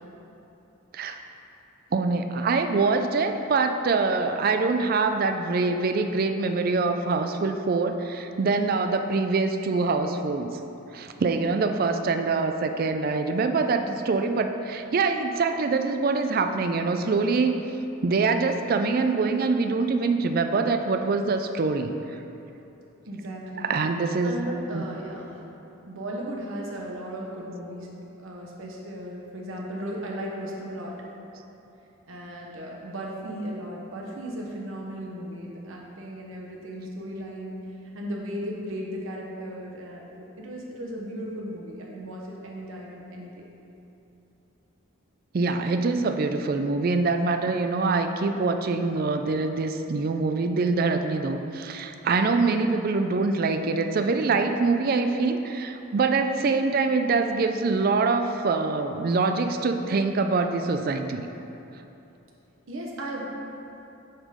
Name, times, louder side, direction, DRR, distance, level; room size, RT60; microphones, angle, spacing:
voice 1, 1.9-10.5 10.9-17.6 18.0-21.9 23.6-24.4 24.7-24.8 45.3-61.3, right 4 dB, 45° right, 7 dB, 0.4 m, -24 dB
voice 2, 23.1-23.7 24.2-25.4 25.8-27.9 28.2-31.0 32.1-43.4 62.7-63.2, equal, 70° right, -2 dB, 1.1 m, -36 dB
8.0 x 3.8 x 4.9 m, 2.9 s
head